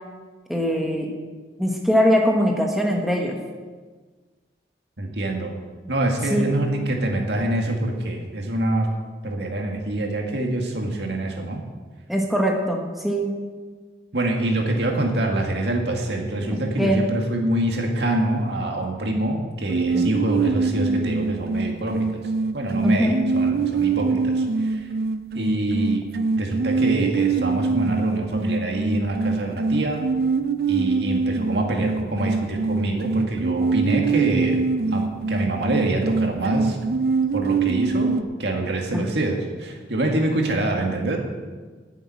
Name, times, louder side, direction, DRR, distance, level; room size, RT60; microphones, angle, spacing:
voice 1, 0.5-1.1 1.6-3.4 6.3-6.5 12.1-13.3 16.5-17.1 19.9-20.1 22.8-23.2 38.9-39.0, equal, ahead, 0 dB, 1.2 m, -22 dB
voice 2, 5.0-5.5 5.9-8.9 9.2-11.6 14.1-22.2 22.5-24.9 25.3-26.1 26.3-30.0 30.7-34.6 34.9-36.8 37.3-41.2, right 1 dB, 80° right, 1 dB, 2.0 m, -25 dB
sound 1, 19.7-38.2, right 4 dB, 60° right, 0.4 m, -24 dB
10.0 x 7.3 x 8.9 m, 1.4 s
head